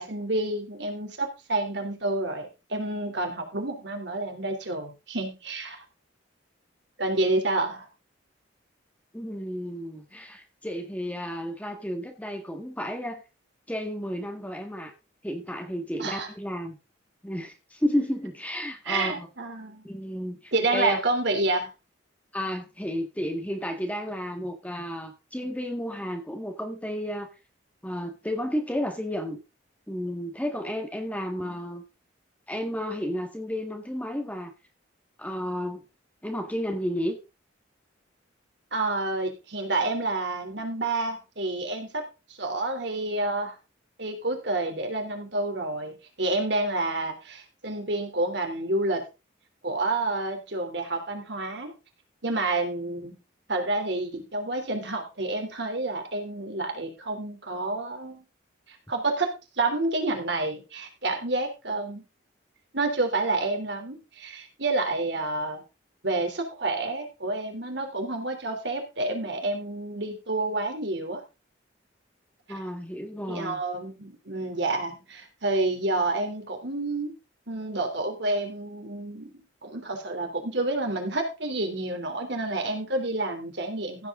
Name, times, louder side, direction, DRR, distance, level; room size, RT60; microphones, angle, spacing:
voice 1, 0.0-5.8 7.0-7.9 16.0-16.3 18.8-19.9 20.5-21.7 31.4-31.5 38.7-42.0 42.4-43.5 44.0-49.0 49.6-51.7 52.2-53.2 53.5-58.2 58.7-62.0 62.7-65.6 66.0-71.2 72.5-72.6 73.3-77.1 77.5-84.1, right 2 dB, 60° right, 5 dB, 3.4 m, -29 dB
voice 2, 9.1-13.2 13.7-14.9 15.2-16.8 17.2-19.3 19.8-21.0 22.3-27.3 27.8-29.4 29.9-31.8 32.5-34.5 35.2-35.8 36.2-37.2 72.5-73.6, equal, 10° left, 4 dB, 1.7 m, -32 dB
15.5 x 8.2 x 3.8 m, 0.29 s
head